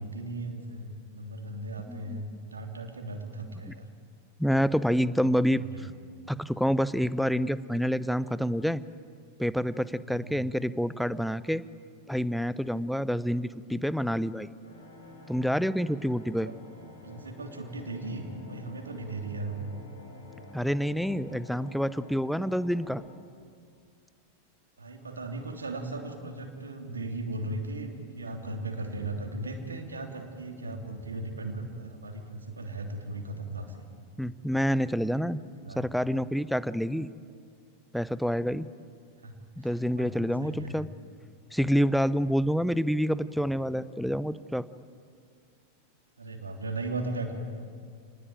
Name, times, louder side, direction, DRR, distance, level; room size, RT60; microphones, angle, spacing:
voice 1, 0.0-3.9 5.0-5.2 5.6-5.8 10.0-10.5 16.3-16.5 17.0-19.7 24.8-33.8 35.7-35.8 39.2-40.8 46.2-47.3, right 2 dB, 75° right, 4 dB, 3.0 m, -37 dB
voice 2, 1.9-2.2 3.6-3.7 4.4-5.9 6.3-8.8 9.4-11.6 12.1-14.5 15.3-16.5 20.5-23.0 34.2-35.4 35.7-37.1 37.9-38.7 39.6-40.9 41.5-44.7, equal, ahead, 17 dB, 0.7 m, -28 dB
sound 1, 14.6-23.1, left 2 dB, 75° left, 7.5 m, -49 dB
29.0 x 20.0 x 9.2 m, 2.2 s
figure-of-eight pair, 90°, 0 cm